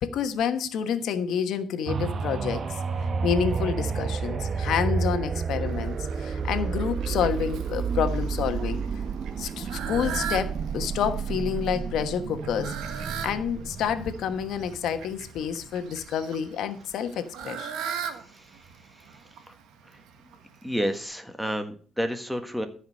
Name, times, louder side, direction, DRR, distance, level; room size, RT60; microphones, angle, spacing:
voice 1, 0.0-2.8 3.2-8.8 9.4-17.7, left 8 dB, 80° left, 1.2 m, -29 dB
sound 1, 1.9-15.5 16.0-16.1, right 5 dB, 50° right, 0.9 m, -30 dB
Fowl, 5.7-21.0, right 7 dB, 85° right, 1.4 m, -40 dB
voice 2, 20.6-22.7, equal, ahead, 1.6 m, -29 dB
13.5 x 5.0 x 6.4 m
cardioid pair, 90°, 0 cm